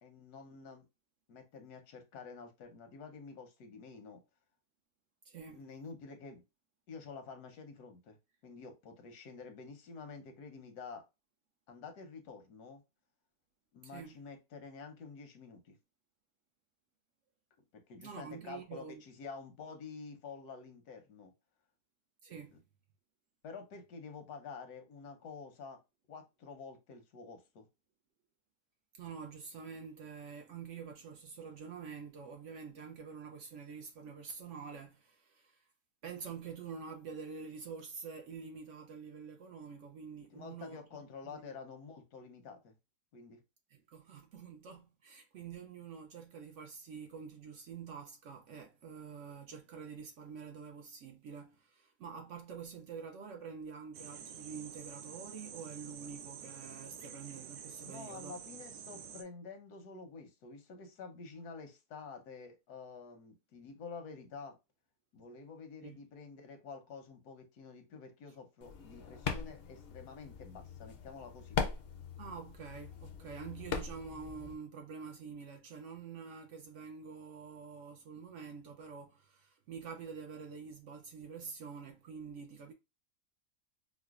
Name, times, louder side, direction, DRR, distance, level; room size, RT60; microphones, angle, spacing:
voice 1, 0.0-0.8 1.3-4.2 5.5-6.4 6.9-8.2 8.4-11.1 11.7-12.8 13.7-15.8 17.7-21.3 23.4-25.8 26.1-27.7 40.3-42.8 43.1-43.4 57.8-64.6 65.1-71.6, left 5 dB, 90° left, 1.3 m, -49 dB
voice 2, 5.2-5.6 13.8-14.2 18.0-19.0 22.2-22.6 28.9-35.6 36.0-40.8 41.2-41.4 43.7-58.3 65.8-66.0 72.2-82.7, right 6 dB, 65° right, 0.8 m, -47 dB
sound 1, 53.9-59.2, right 8 dB, 85° right, 1.1 m, -49 dB
sound 2, 68.6-74.5, left 6 dB, 65° left, 0.6 m, -40 dB
4.8 x 2.1 x 2.4 m
omnidirectional pair, 1.6 m